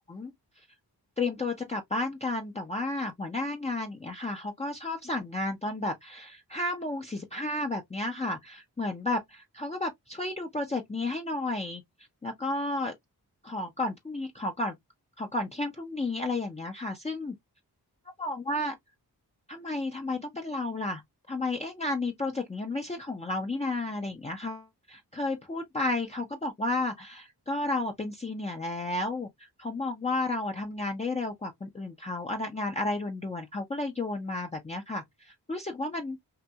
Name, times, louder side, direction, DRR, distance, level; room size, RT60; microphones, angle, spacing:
voice 1, 1.2-11.8 12.2-12.9 13.4-14.8 15.2-17.3 18.2-18.7 19.5-21.0 21.3-29.3 29.6-36.2, left 2 dB, 15° left, 0.5 m, -32 dB
2.7 x 2.5 x 2.3 m
cardioid pair, 50°, 40 cm